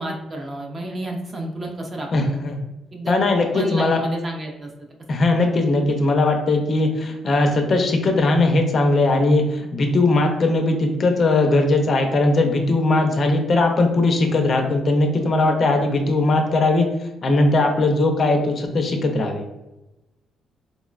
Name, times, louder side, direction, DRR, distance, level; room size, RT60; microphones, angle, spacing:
voice 1, 0.0-2.6 2.9-4.7 15.4-15.6, right 1 dB, 30° right, 1 dB, 0.5 m, -31 dB
voice 2, 2.1-2.6 3.1-4.0 5.1-16.9 17.2-19.4, left 2 dB, 35° left, 3 dB, 0.4 m, -19 dB
3.8 x 2.0 x 2.3 m, 0.98 s
cardioid pair, 155°, 0 cm